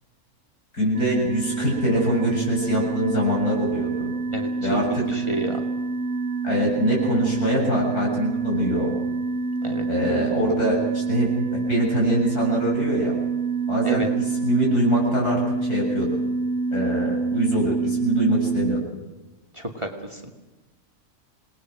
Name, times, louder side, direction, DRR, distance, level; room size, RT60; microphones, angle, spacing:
voice 1, 0.7-4.1 4.6-5.0 6.4-8.9 9.9-13.1 13.7-14.0 14.4-16.1 16.7-18.8, equal, 85° left, -2 dB, 8.1 m, -24 dB
sound 1, 0.9-18.8, right 4 dB, 60° right, 1.7 m, -27 dB
voice 2, 4.3-5.7 9.6-9.9 13.8-14.1 19.5-20.2, right 1 dB, 20° right, 3 dB, 2.3 m, -30 dB
27.0 x 20.0 x 6.1 m, 1.2 s
omnidirectional pair, 1.6 m